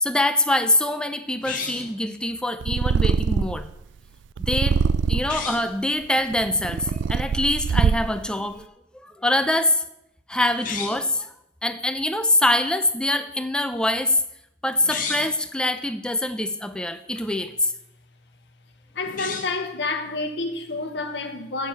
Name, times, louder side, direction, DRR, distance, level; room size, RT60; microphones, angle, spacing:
voice 1, 0.0-3.7 4.4-4.8 5.1-9.8 10.3-11.3 11.6-14.2 14.6-17.7, left 1 dB, 5° left, 0.6 m, -24 dB
sound 1, 1.4-2.0 5.2-5.7 10.5-11.1 14.7-15.4 19.0-19.7, left 5 dB, 50° left, 1.3 m, -32 dB
Purr, 2.6-3.7 4.4-5.5 6.2-8.3, right 6 dB, 75° right, 0.3 m, -23 dB
voice 2, 18.9-21.7, left 3 dB, 65° left, 0.9 m, -29 dB
8.1 x 6.6 x 7.1 m
head